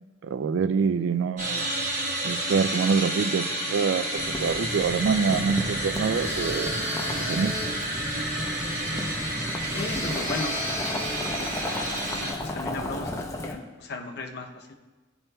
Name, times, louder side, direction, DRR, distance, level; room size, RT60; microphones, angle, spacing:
voice 1, 0.2-1.7 2.2-6.7 7.2-7.6, right 5 dB, 70° right, 13 dB, 0.3 m, -26 dB
sound 1, 1.4-12.3, right 1 dB, 40° right, 1.1 m, -30 dB
Boiling, 4.2-13.5, left 1 dB, 15° left, 0.6 m, -34 dB
sound 2, 6.1-7.8 9.6-11.4, left 1 dB, 20° right, 1.8 m, -35 dB
voice 2, 8.7-9.1 9.7-10.7 12.1-14.7, left 2 dB, 55° left, 3 dB, 0.7 m, -36 dB
12.5 x 4.3 x 2.2 m, 1.2 s
head